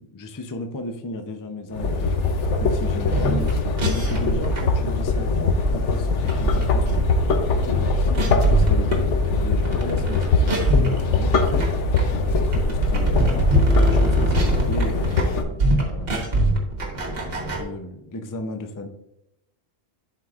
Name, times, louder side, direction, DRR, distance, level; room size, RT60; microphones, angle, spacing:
voice 1, 0.0-2.2 2.6-3.4 3.9-6.9 7.5-9.1 9.4-11.7 12.3-13.5 13.9-16.4 17.0-18.9, left 2 dB, 30° left, 6 dB, 0.3 m, -34 dB
sound 1, 1.7-15.4, left 3 dB, 70° left, 1.0 m, -22 dB
sound 2, 3.1-17.6, right 1 dB, 50° right, 1.5 m, -24 dB
11.0 x 4.7 x 2.4 m, 0.86 s
omnidirectional pair, 1.3 m